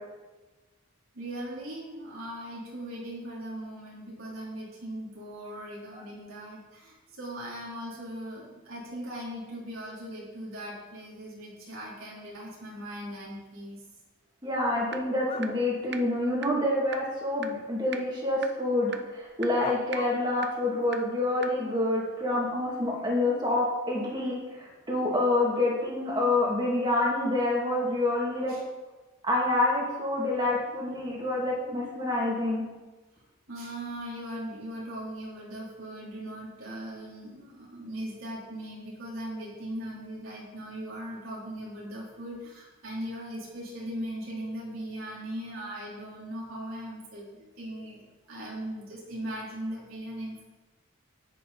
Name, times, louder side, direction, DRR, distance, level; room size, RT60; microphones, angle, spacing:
voice 1, 1.1-13.8 28.5-28.6 33.5-48.0 48.3-50.4, right 1 dB, 75° right, -5 dB, 3.9 m, -39 dB
voice 2, 14.4-28.5 29.2-32.6, left 2 dB, 20° right, -5 dB, 2.5 m, -27 dB
sound 1, 14.9-15.0 15.4-15.5 15.9-16.0 16.4-16.5 16.9-17.0 17.4-17.5 17.9-18.0 18.4-18.5 18.9-19.0 19.4-19.5 19.9-20.0 20.4-20.5 20.9-21.0 21.4-21.5, right 7 dB, 50° right, 0.6 m, -35 dB
sound 2, 15.2-15.5 16.8-16.9 19.6-20.2, left 4 dB, 25° left, 0.4 m, -38 dB
10.0 x 9.9 x 4.2 m, 1.2 s
head